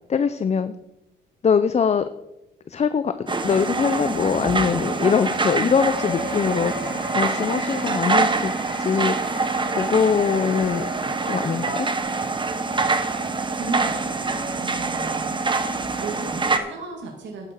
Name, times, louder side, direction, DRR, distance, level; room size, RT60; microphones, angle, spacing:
voice 1, 0.1-0.7 1.4-2.0 2.7-8.5 8.8-9.4 9.8-10.9 11.2-11.9, left 6 dB, 35° left, 11 dB, 0.6 m, -22 dB
sound 1, 3.3-16.6, right 3 dB, 25° right, 1.2 m, -25 dB
sound 2, 5.8-12.0, left 3 dB, 60° left, 3.0 m, -37 dB
voice 2, 13.5-14.0 14.6-15.4 15.9-17.5, right 4 dB, 65° right, 0 dB, 2.2 m, -35 dB
11.5 x 9.7 x 4.5 m, 0.92 s
cardioid pair, 90°, 20 cm